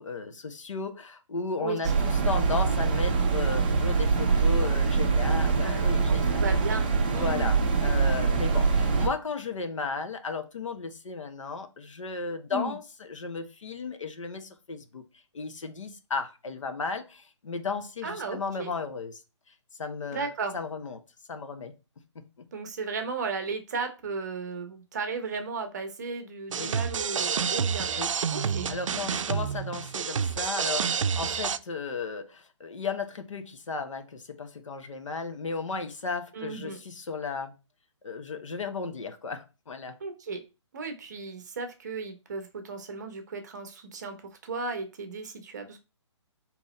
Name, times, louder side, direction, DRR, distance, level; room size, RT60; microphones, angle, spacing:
voice 1, 0.0-6.5 7.0-15.0 15.3-19.2 19.8-21.0 21.3-21.7 22.1-22.5 26.6-26.8 28.0-28.1 28.7-37.5 38.0-40.0, left 4 dB, 90° left, 1.0 m, -35 dB
sound 1, 1.8-9.1, right 4 dB, 20° right, 0.5 m, -24 dB
voice 2, 5.6-7.5 12.5-12.8 18.0-18.7 20.1-20.5 22.5-28.0 28.3-28.7 36.3-36.8 40.0-40.4 40.7-44.2 44.4-45.8, right 4 dB, 35° right, 0.9 m, -35 dB
sound 2, 26.5-31.6, right 7 dB, 90° right, 0.4 m, -29 dB
3.9 x 2.9 x 4.1 m
hypercardioid pair, 175°, 16 cm